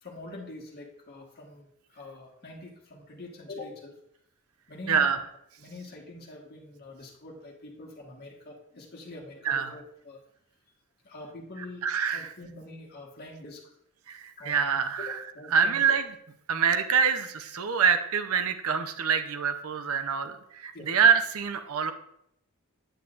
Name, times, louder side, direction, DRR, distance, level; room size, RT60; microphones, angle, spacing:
voice 1, 0.0-3.9 4.7-5.2 5.6-10.2 11.0-11.9 12.1-13.6 14.4-14.7 15.0-15.9 20.7-20.9, left 2 dB, 45° left, -1 dB, 1.6 m, -44 dB
voice 2, 4.9-5.2 9.5-9.7 11.8-12.3 14.1-15.2 15.5-16.0 16.5-21.9, right 6 dB, 75° right, 9 dB, 0.7 m, -25 dB
9.1 x 8.2 x 2.5 m, 0.73 s
head